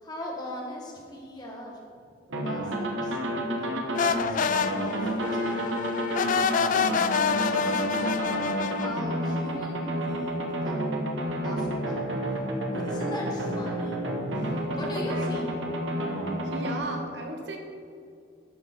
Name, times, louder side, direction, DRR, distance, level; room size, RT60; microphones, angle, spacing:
voice 1, 0.0-1.8 2.3-3.2 3.5-5.8 7.3-8.3 8.7-10.8 11.4-12.4 12.7-14.1 14.4-15.5, left 1 dB, 20° left, -1 dB, 1.5 m, -40 dB
sound 1, 2.3-16.8, right 1 dB, 85° right, 1.3 m, -30 dB
sound 2, 3.9-9.0, left 6 dB, 45° left, 0.3 m, -27 dB
voice 2, 14.4-15.5 16.4-17.6, right 2 dB, 65° right, 3 dB, 1.1 m, -37 dB
10.5 x 6.6 x 4.4 m, 2.4 s
head